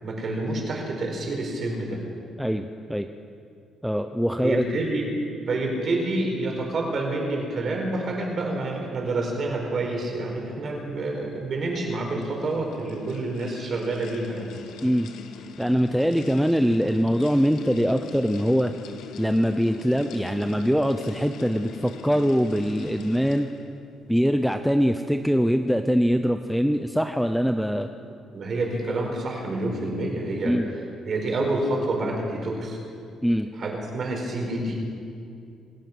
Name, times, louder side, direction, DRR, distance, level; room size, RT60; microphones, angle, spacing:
voice 1, 0.0-2.0 4.4-5.1 5.5-14.5 28.3-30.5 31.0-32.8 33.6-34.7, right 2 dB, 35° right, 0 dB, 4.8 m, -28 dB
voice 2, 2.4-3.1 3.8-4.6 14.8-15.1 15.6-18.7 19.2-23.5 24.1-27.9 30.4-30.7 33.2-33.5, equal, ahead, 6 dB, 0.6 m, -23 dB
sound 1, 11.6-23.8, left 6 dB, 80° left, 1.5 m, -42 dB
27.0 x 16.5 x 6.1 m, 2.5 s
cardioid pair, 165°, 0 cm